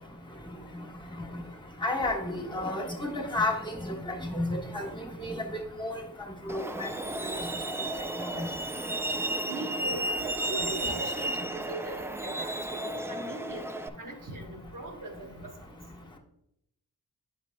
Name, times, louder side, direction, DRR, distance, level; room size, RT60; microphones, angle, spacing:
voice 1, 1.8-6.0 6.5-6.9 8.3-8.5, left 1 dB, 15° left, -1 dB, 1.3 m, -32 dB
Truck, 6.5-13.9, right 1 dB, 10° right, 0.3 m, -33 dB
voice 2, 9.5-12.5 12.8-13.7 14.0-15.5, right 2 dB, 60° right, 0 dB, 1.3 m, -40 dB
8.6 x 6.0 x 2.2 m, 0.79 s
cardioid pair, 55°, 35 cm